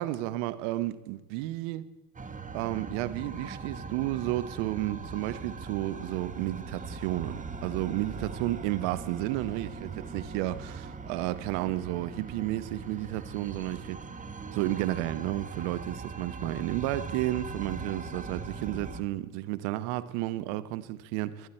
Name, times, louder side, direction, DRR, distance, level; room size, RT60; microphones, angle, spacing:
voice 1, 0.0-1.8 2.5-14.0 14.5-21.5, right 16 dB, 70° right, 1.1 m, -32 dB
sound 1, 2.1-19.0, right 4 dB, 20° right, 1.4 m, -40 dB
24.5 x 9.5 x 4.4 m
hypercardioid pair, 85°, 38 cm